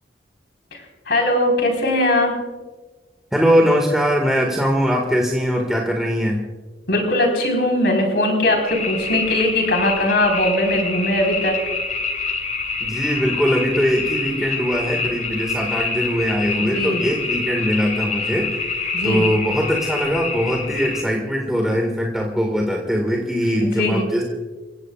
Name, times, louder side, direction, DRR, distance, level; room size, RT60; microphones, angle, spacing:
voice 1, 0.7-2.4 6.9-11.6 16.5-17.0 18.9-19.3 23.8-24.1, left 1 dB, 65° left, 2 dB, 4.4 m, -20 dB
voice 2, 3.3-6.5 12.8-24.2, equal, 5° right, -1 dB, 1.9 m, -21 dB
sound 1, 8.6-21.0, left 4 dB, 50° left, 3.1 m, -26 dB
29.5 x 16.5 x 2.5 m, 1.3 s
head